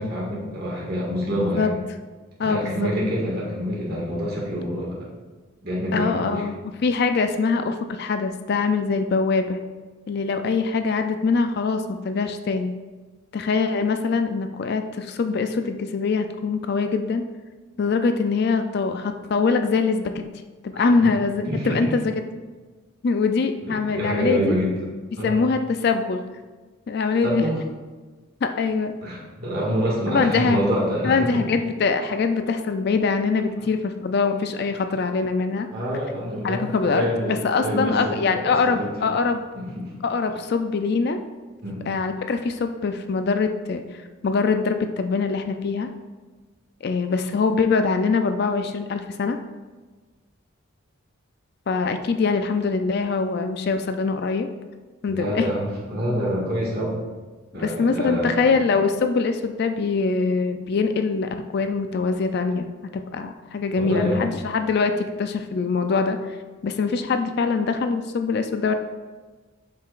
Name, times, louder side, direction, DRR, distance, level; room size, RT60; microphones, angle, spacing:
voice 1, 0.0-1.7 2.4-5.1 5.6-6.4 21.0-21.1 21.5-21.9 23.6-24.7 25.2-25.4 27.2-27.6 29.0-31.4 35.7-39.1 39.6-39.9 41.6-41.9 55.1-57.0 57.5-58.6 63.8-64.2, equal, 45° right, -5 dB, 1.9 m, -26 dB
voice 2, 2.4-2.9 5.9-9.6 10.1-12.7 13.3-17.2 17.8-20.2 20.6-22.1 23.0-24.6 25.2-26.2 26.9-27.5 28.4-28.9 30.1-30.6 31.0-35.7 36.4-39.4 40.0-41.2 41.9-45.9 46.8-49.4 51.7-54.5 55.0-55.5 57.6-62.7 62.9-66.4 66.6-68.7, left 4 dB, 50° left, 7 dB, 0.3 m, -23 dB
7.3 x 5.8 x 2.5 m, 1.3 s
head